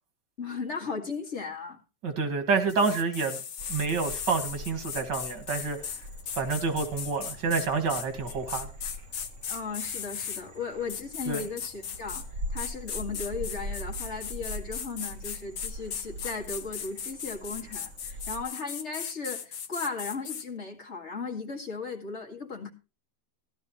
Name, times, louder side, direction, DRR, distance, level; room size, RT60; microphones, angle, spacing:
voice 1, 0.4-1.8 9.5-12.2 12.5-22.7, left 4 dB, 40° left, 1 dB, 2.4 m, -36 dB
voice 2, 2.0-3.4 3.7-5.8 6.3-8.7 11.3-11.4, right 4 dB, 85° right, 6 dB, 2.6 m, -28 dB
sound 1, 2.7-10.4 10.9-12.3 12.6-20.5, left 7 dB, 65° left, 1.5 m, -37 dB
Frog, 3.6-18.4, equal, 50° right, 2.2 m, -42 dB
16.0 x 12.0 x 3.0 m, 0.31 s
omnidirectional pair, 1.8 m